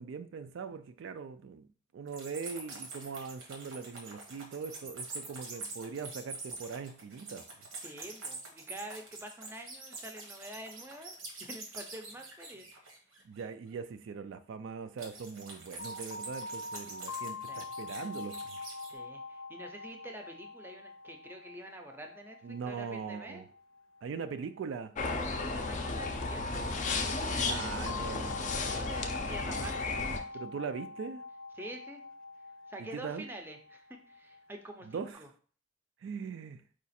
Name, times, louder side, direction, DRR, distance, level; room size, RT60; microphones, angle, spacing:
voice 1, 0.0-1.7 1.9-7.7 13.2-18.6 22.4-23.5 24.0-24.9 27.4-28.4 30.3-31.2 32.8-33.3 34.8-35.3 36.0-36.6, right 5 dB, 65° right, 10 dB, 0.3 m, -41 dB
sound 1, 2.1-13.4 15.0-18.9, right 3 dB, 90° right, 1.4 m, -45 dB
voice 2, 7.8-11.1 11.4-12.9 17.5-17.7 18.9-23.5 25.1-26.6 28.7-30.4 31.6-32.0 32.7-35.3, right 1 dB, 10° right, 4 dB, 0.5 m, -47 dB
sound 2, 15.8-24.6 25.8-35.0, left 3 dB, 90° left, 0.6 m, -44 dB
sound 3, 25.0-30.2, left 3 dB, 40° left, 0.5 m, -34 dB
4.9 x 2.4 x 4.1 m, 0.43 s
head